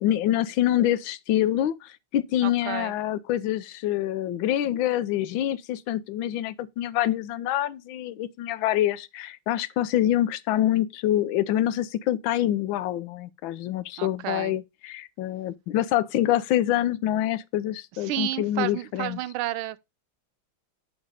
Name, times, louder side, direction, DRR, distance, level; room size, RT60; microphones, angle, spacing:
voice 1, 0.0-19.2, left 12 dB, 75° left, 1.4 m, -26 dB
voice 2, 2.4-2.9 14.0-14.6 18.0-19.8, right 15 dB, 85° right, 1.4 m, -31 dB
10.5 x 3.6 x 5.0 m
omnidirectional pair, 2.2 m